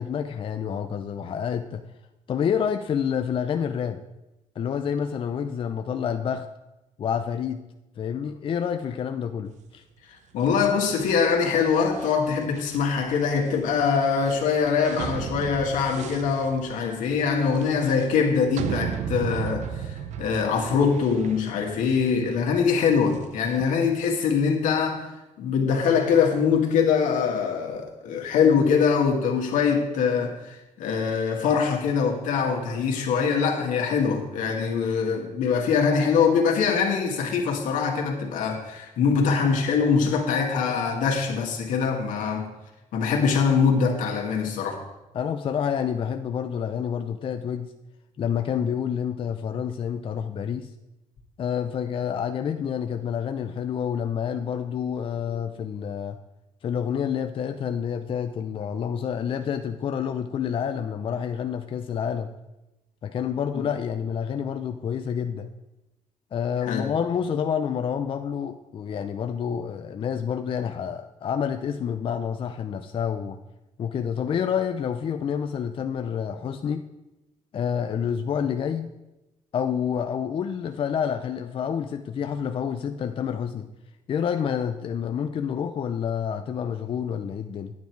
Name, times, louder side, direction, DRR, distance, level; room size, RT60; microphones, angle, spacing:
voice 1, 0.0-1.8 2.3-4.0 4.6-6.5 7.0-7.6 8.0-9.8 45.1-47.7 48.2-50.7 51.4-56.2 56.6-62.3 63.0-65.5 66.3-73.4 73.8-76.9 77.5-78.9 79.5-83.7 84.1-87.7, left 7 dB, 45° left, 7 dB, 0.5 m, -28 dB
voice 2, 10.1-25.1 25.4-42.5 42.9-44.8 66.6-66.9, left 6 dB, 90° left, 1 dB, 1.9 m, -23 dB
sound 1, 10.4-23.7, right 8 dB, 70° right, 0.7 m, -36 dB
9.3 x 9.2 x 4.6 m, 0.98 s
cardioid pair, 115°, 13 cm